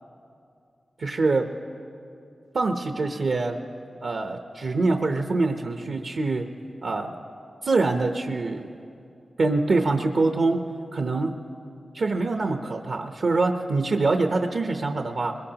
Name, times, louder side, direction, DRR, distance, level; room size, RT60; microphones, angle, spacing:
voice 1, 1.0-1.4 2.5-3.6 4.0-6.5 6.8-7.1 7.6-8.7 9.4-10.6 10.9-11.3 12.0-15.4, right 3 dB, 70° right, 4 dB, 0.8 m, -24 dB
22.5 x 21.0 x 2.9 m, 2.5 s
cardioid pair, 60°, 0 cm